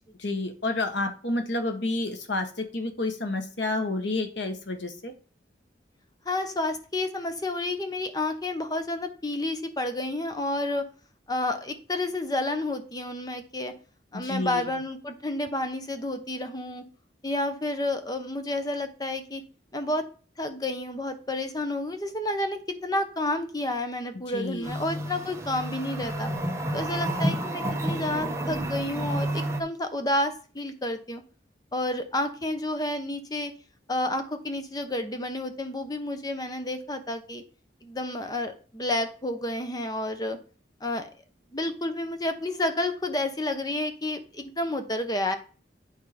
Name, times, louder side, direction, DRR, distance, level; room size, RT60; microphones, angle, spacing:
voice 1, 0.2-5.1 14.1-14.6 24.3-24.7, left 2 dB, 80° left, 6 dB, 1.5 m, -30 dB
voice 2, 6.2-10.8 11.3-13.7 14.1-16.8 17.2-19.4 19.7-20.0 20.4-26.3 26.7-31.2 31.7-33.5 33.9-37.4 37.8-40.4 40.8-41.1 41.5-45.3, left 1 dB, 20° left, 7 dB, 0.9 m, -30 dB
sound 1, 24.6-29.6, right 1 dB, 15° right, 1.0 m, -30 dB
9.1 x 4.6 x 5.1 m, 0.38 s
head